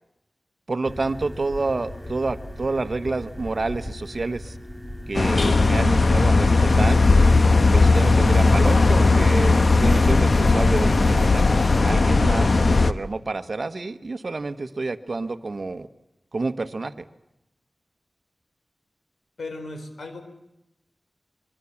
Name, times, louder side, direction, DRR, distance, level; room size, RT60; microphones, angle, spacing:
voice 1, 0.7-4.6 5.1-7.0 7.7-15.9 16.3-17.1, right 3 dB, 50° right, 11 dB, 1.3 m, -28 dB
sound 1, 0.8-7.2, left 1 dB, 15° left, 2.5 m, -38 dB
sound 2, 5.1-12.9, left 3 dB, 55° left, 1.1 m, -17 dB
voice 2, 19.4-20.2, left 2 dB, 80° left, 7 dB, 4.3 m, -36 dB
23.0 x 23.0 x 7.2 m, 0.89 s
wide cardioid pair, 75°, 0 cm